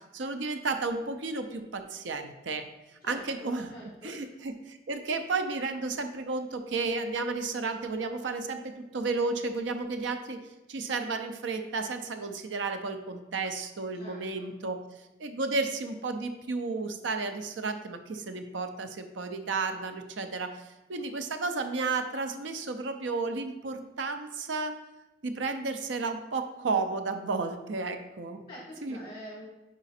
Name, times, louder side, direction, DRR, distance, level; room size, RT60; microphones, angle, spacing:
voice 1, 0.1-2.6 3.1-3.7 4.0-10.4 10.7-14.8 15.2-24.7 25.2-28.4 28.8-29.0, right 3 dB, 85° right, 8 dB, 0.6 m, -32 dB
voice 2, 3.0-4.2 14.0-14.5 28.5-29.5, equal, 30° left, -3 dB, 1.1 m, -46 dB
5.0 x 4.9 x 4.2 m, 1.0 s
head